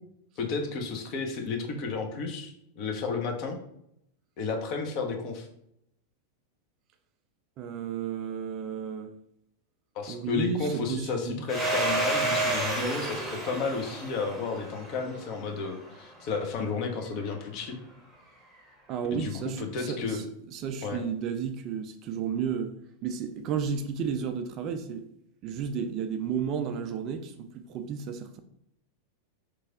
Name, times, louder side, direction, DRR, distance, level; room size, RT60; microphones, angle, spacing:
voice 1, 0.4-3.6 4.4-5.5 9.9-17.8 19.1-20.2 20.8-21.0, left 4 dB, 40° left, 3 dB, 0.7 m, -32 dB
voice 2, 7.6-9.1 10.1-11.4 18.9-22.7 23.0-25.1 25.4-28.4, right 7 dB, 35° right, 7 dB, 0.3 m, -33 dB
Domestic sounds home sounds, 11.5-15.9, right 2 dB, 10° right, 0.8 m, -30 dB
3.1 x 2.3 x 3.7 m, 0.74 s
figure-of-eight pair, 90°, 0 cm